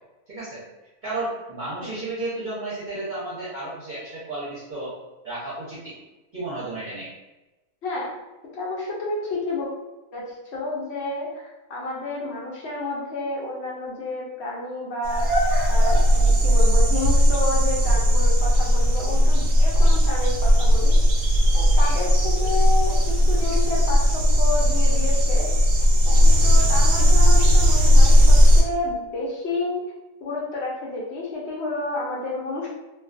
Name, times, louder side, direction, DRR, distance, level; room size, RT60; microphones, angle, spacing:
voice 1, 0.3-0.6 1.0-4.9 5.2-5.9 6.3-7.1, right 2 dB, 45° right, -9 dB, 0.7 m, -32 dB
voice 2, 8.5-9.7 10.1-10.2 10.5-15.4 15.7-21.0 21.5-25.5 26.1-29.8 30.2-32.7, left 2 dB, 65° left, -4 dB, 0.7 m, -30 dB
sound 1, 15.0-28.6, equal, 90° right, 1.0 m, -17 dB
2.3 x 2.3 x 2.4 m, 1.1 s
omnidirectional pair, 1.5 m